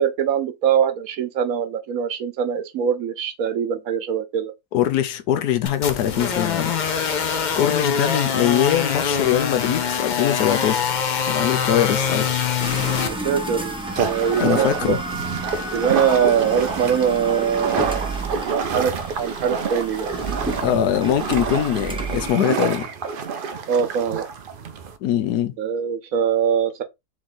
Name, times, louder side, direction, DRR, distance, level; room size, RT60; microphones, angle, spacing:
voice 1, 0.0-4.5 13.1-15.0 15.7-18.1 18.5-20.1 23.7-24.3 25.6-26.8, right 8 dB, 70° right, 1.1 m, -22 dB
voice 2, 4.7-6.7 7.2-10.8 11.2-12.3 14.4-15.0 20.6-22.9 25.0-25.5, left 11 dB, 90° left, 1.2 m, -22 dB
sound 1, 5.7-13.1, left 7 dB, 70° left, 0.4 m, -23 dB
sound 2, 12.6-22.3, right 2 dB, 5° right, 0.6 m, -31 dB
sound 3, 14.0-25.0, right 6 dB, 85° right, 0.4 m, -28 dB
3.6 x 3.2 x 3.9 m
omnidirectional pair, 1.6 m